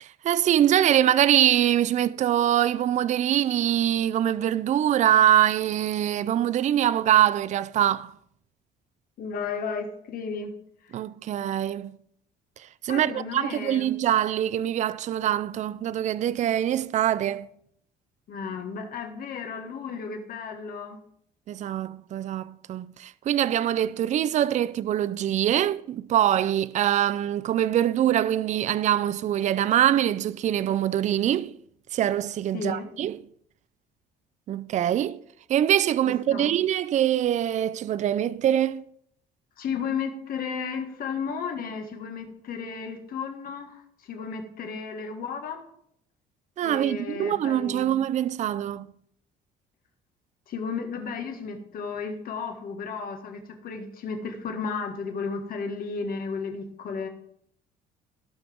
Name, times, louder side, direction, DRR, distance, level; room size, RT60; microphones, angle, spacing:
voice 1, 0.0-8.1 10.9-12.0 12.8-17.5 21.5-31.5 31.9-33.2 34.5-35.2 35.5-38.8 46.6-48.9, right 11 dB, 45° right, 0.4 m, -24 dB
voice 2, 9.2-10.5 10.8-11.0 12.9-13.9 18.3-21.0 23.8-23.9 32.5-32.9 36.3-36.6 39.6-45.6 46.6-48.0 50.5-57.1, left 5 dB, 60° left, 1.8 m, -33 dB
16.5 x 5.9 x 3.7 m
cardioid pair, 110°, 17 cm